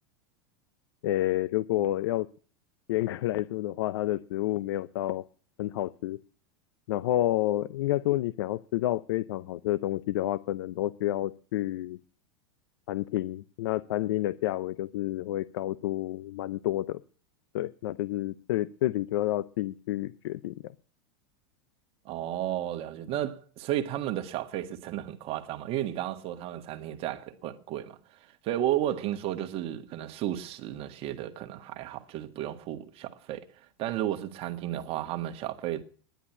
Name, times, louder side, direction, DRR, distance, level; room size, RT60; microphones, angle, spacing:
voice 1, 1.0-2.3 2.9-5.2 5.6-6.2 6.9-12.0 12.9-17.0 17.5-20.5, left 15 dB, 75° left, 0.6 m, -29 dB
voice 2, 22.0-28.0 28.4-33.5 33.8-35.8, right 12 dB, 45° right, 1.8 m, -33 dB
10.5 x 10.0 x 9.8 m
hypercardioid pair, 115°, 13 cm